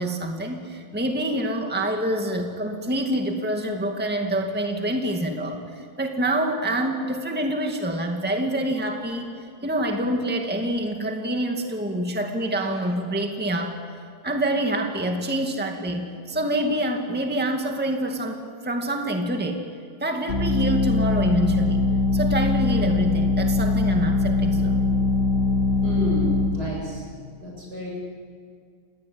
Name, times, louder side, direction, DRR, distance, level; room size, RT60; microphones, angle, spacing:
voice 1, 0.0-9.3 9.6-13.8 14.2-19.6 20.0-21.9 22.1-24.9, right 1 dB, 5° right, 3 dB, 2.1 m, -26 dB
sound 1, 20.3-26.5, left 3 dB, 50° left, 3.3 m, -22 dB
voice 2, 25.8-27.1 27.4-27.9, equal, 75° right, -2 dB, 8.5 m, -31 dB
27.5 x 20.5 x 8.9 m, 2.2 s
omnidirectional pair, 1.7 m